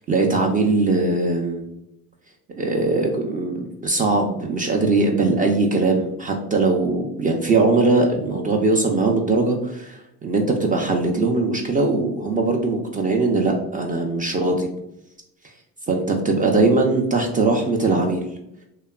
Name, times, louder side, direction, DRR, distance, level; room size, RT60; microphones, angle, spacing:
voice 1, 0.0-1.6 2.6-14.7 15.9-18.2, right 3 dB, 20° right, 1 dB, 0.3 m, -20 dB
2.7 x 2.3 x 2.2 m, 0.81 s
supercardioid pair, 80°, 39 cm